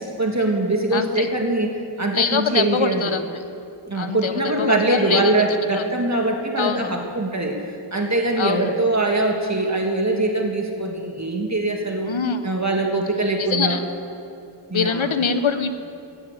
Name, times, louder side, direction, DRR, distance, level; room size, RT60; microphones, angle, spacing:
voice 1, 0.2-1.7 2.0-3.1 3.9-7.7 7.9-12.1 12.4-13.8 14.7-15.1, right 2 dB, 35° right, 1 dB, 1.9 m, -22 dB
voice 2, 0.9-1.3 2.1-3.2 3.9-5.3 5.7-5.8 6.6-6.8 8.4-8.7 12.0-12.4 13.4-13.8 14.7-15.7, left 6 dB, 80° left, 9 dB, 1.1 m, -24 dB
15.5 x 10.0 x 8.1 m, 2.7 s
cardioid pair, 45°, 47 cm